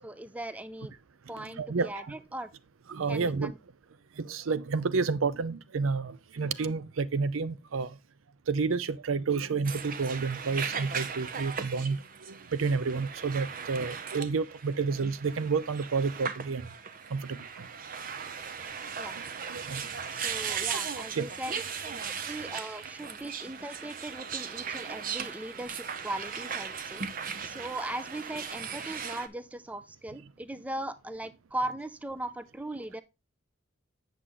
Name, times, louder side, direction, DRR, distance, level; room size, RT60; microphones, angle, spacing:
voice 1, 0.0-0.9 1.3-2.5 3.1-3.6 19.0-19.2 20.1-21.5 21.8-22.0 22.3-33.0, right 1 dB, 5° right, 0.4 m, -39 dB
voice 2, 1.3-2.1 2.9-3.5 4.2-8.0 8.5-16.7 17.1-17.7 19.5-19.9 21.2-21.3, right 4 dB, 85° right, 0.5 m, -30 dB
sound 1, 9.6-29.3, right 6 dB, 45° right, 0.7 m, -38 dB
8.2 x 6.3 x 3.7 m
head